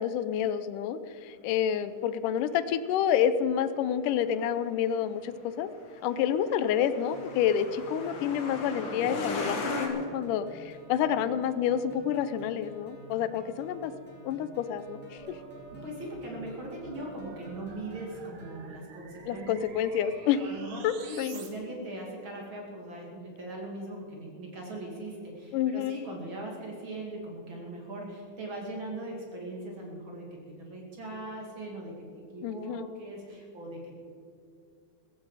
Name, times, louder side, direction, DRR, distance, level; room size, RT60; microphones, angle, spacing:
voice 1, 0.0-5.7 6.0-13.9 14.2-15.4 19.3-20.4 20.8-21.4 25.5-26.0 32.4-32.9, left 9 dB, 80° left, 13 dB, 2.0 m, -29 dB
Truck, 5.8-9.9, left 3 dB, 45° left, 1.9 m, -36 dB
sound 1, 7.1-18.6, right 1 dB, 5° left, 2.5 m, -52 dB
sound 2, 15.2-21.5, right 4 dB, 65° right, 2.8 m, -49 dB
voice 2, 15.7-19.5 20.4-34.0, right 1 dB, 40° right, -1 dB, 2.6 m, -40 dB
16.0 x 15.0 x 4.8 m, 2.4 s
omnidirectional pair, 4.2 m